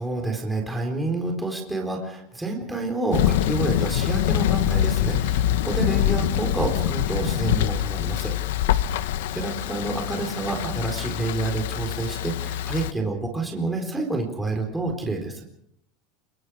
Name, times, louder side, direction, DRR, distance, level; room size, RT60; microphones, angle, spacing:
voice 1, 0.0-8.3 8.9-15.4, right 2 dB, 5° right, 1 dB, 4.2 m, -28 dB
Thunder, 3.1-12.9, left 11 dB, 80° left, 1.3 m, -24 dB
27.0 x 23.5 x 5.0 m, 0.75 s
supercardioid pair, 165°, 0 cm